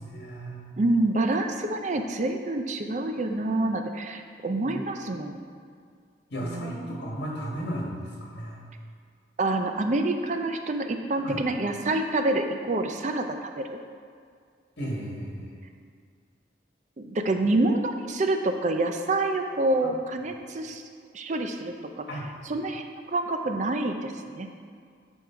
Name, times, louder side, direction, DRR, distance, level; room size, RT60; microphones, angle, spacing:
voice 1, 0.0-0.6 4.5-4.8 6.3-8.6 11.2-11.4 14.8-15.6 19.8-19.9 22.1-22.3, equal, 65° left, -3 dB, 1.8 m, -35 dB
voice 2, 0.8-5.4 6.4-6.9 9.4-13.8 17.0-20.8 21.1-22.1 22.5-24.5, right 2 dB, 40° right, 6 dB, 0.5 m, -27 dB
9.4 x 5.4 x 4.6 m, 2.1 s
head